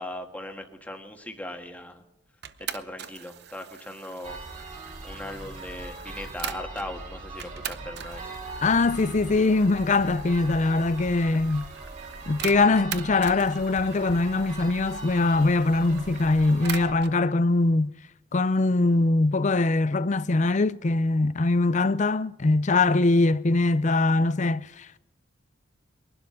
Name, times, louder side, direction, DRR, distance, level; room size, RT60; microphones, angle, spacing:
voice 1, 0.0-2.0 2.7-4.4 5.0-8.3, left 1 dB, 10° left, 1.6 m, -38 dB
sound 1, 2.4-6.9 7.4-17.2, right 9 dB, 60° right, 0.8 m, -42 dB
sound 2, 4.2-16.9, right 2 dB, 40° right, 3.2 m, -40 dB
voice 2, 8.6-11.7 12.3-17.9 18.3-25.0, left 3 dB, 40° left, 0.5 m, -22 dB
22.5 x 12.0 x 3.8 m
head